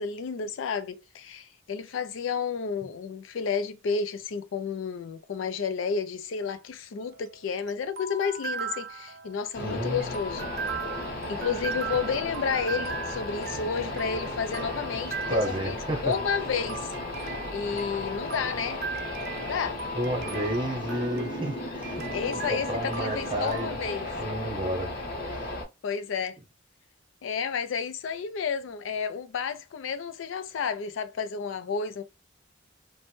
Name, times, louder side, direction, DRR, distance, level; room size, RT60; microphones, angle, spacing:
voice 1, 0.0-10.5 11.3-15.8 16.0-18.8 19.4-19.8 22.1-24.1 25.8-26.4 27.2-32.0, left 6 dB, 80° left, 0.4 m, -31 dB
sound 1, 7.0-23.7, right 5 dB, 55° right, 0.3 m, -39 dB
sound 2, 9.5-25.6, left 2 dB, 50° left, 0.9 m, -35 dB
voice 2, 9.6-10.1 15.3-16.1 19.9-23.7 24.2-24.9 25.3-25.4, right 1 dB, 25° right, 0.8 m, -31 dB
3.1 x 2.1 x 3.1 m
head